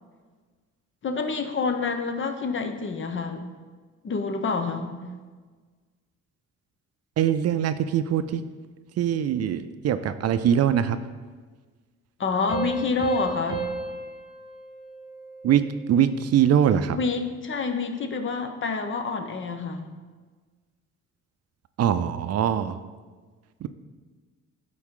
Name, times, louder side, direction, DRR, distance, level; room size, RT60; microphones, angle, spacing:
voice 1, 1.0-3.5 4.0-4.9 12.2-13.6 16.9-19.8, left 4 dB, 40° left, 7 dB, 0.8 m, -28 dB
voice 2, 7.2-8.4 9.0-11.0 15.4-15.6 15.9-17.0 21.8-22.8 23.6-23.7, right 9 dB, 55° right, 11 dB, 0.5 m, -22 dB
sound 1, 12.5-15.8, right 3 dB, 15° right, 2.2 m, -34 dB
11.0 x 4.2 x 3.7 m, 1.4 s
cardioid pair, 90°, 30 cm